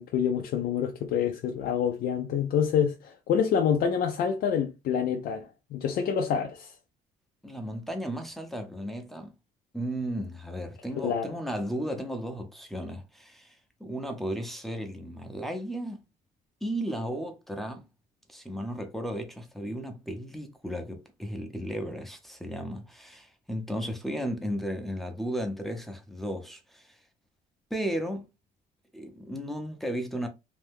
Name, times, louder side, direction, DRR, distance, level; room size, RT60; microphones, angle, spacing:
voice 1, 0.0-6.7 11.0-11.3, left 7 dB, 65° left, 0.5 m, -27 dB
voice 2, 7.4-9.3 9.7-16.0 16.6-17.9 18.3-27.0 27.7-28.3 28.9-30.3, equal, ahead, 0.6 m, -34 dB
2.7 x 2.2 x 3.4 m
cardioid pair, 110°, 17 cm